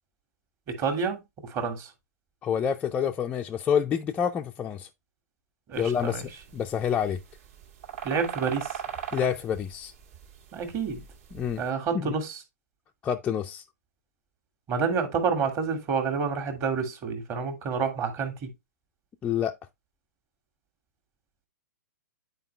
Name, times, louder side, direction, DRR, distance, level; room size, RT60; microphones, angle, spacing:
voice 1, 0.7-1.9 5.7-6.3 8.0-8.8 10.5-11.0 11.6-12.4 14.7-18.5, right 5 dB, 30° right, 1.8 m, -29 dB
voice 2, 2.4-4.9 5.8-6.2 6.5-7.2 9.1-9.9 11.3-11.6 11.9-12.2 13.0-13.6 19.2-19.6, left 8 dB, 15° left, 0.4 m, -27 dB
sound 1, 5.8-11.6, right 9 dB, 50° right, 1.8 m, -39 dB
9.1 x 4.6 x 3.1 m
hypercardioid pair, 140°, 9 cm